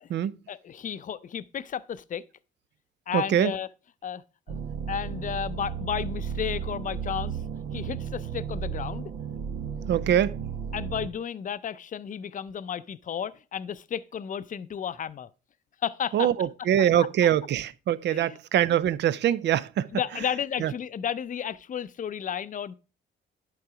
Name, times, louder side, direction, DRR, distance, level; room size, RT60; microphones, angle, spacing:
voice 1, 0.5-2.2 3.1-3.7 4.0-4.2 4.5-4.6 4.9-7.4 7.7-9.1 10.7-15.3 15.8-16.3 17.0-17.1 18.1-18.4 19.9-22.7, left 8 dB, 40° left, 0.5 m, -33 dB
voice 2, 3.1-3.5 9.9-10.4 16.1-19.9 20.6-20.7, right 10 dB, 60° right, 0.5 m, -23 dB
sound 1, 4.5-11.1, right 7 dB, 75° right, 1.1 m, -34 dB
11.0 x 3.9 x 4.8 m
cardioid pair, 90°, 20 cm